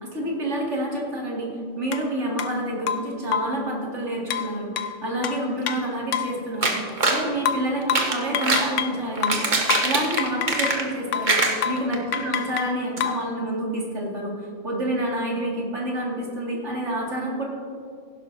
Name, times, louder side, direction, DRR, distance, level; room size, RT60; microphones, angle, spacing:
voice 1, 0.0-1.5 1.7-6.8 7.1-9.5 9.8-17.4, right 1 dB, 70° right, -3 dB, 2.6 m, -28 dB
sound 1, 1.9-2.0 2.4-2.5 2.9-3.6 4.3-6.4 7.5-9.0 9.2-10.8 11.1-11.4 11.6-11.9 12.1-13.3, left 8 dB, 90° left, 0.9 m, -28 dB
sound 2, 6.6-7.3 7.8-8.7 9.1-11.0 11.2-12.2 12.5-12.6 13.0-13.1, right 2 dB, 40° right, 1.3 m, -23 dB
16.0 x 11.5 x 2.7 m, 2.2 s
omnidirectional pair, 1.2 m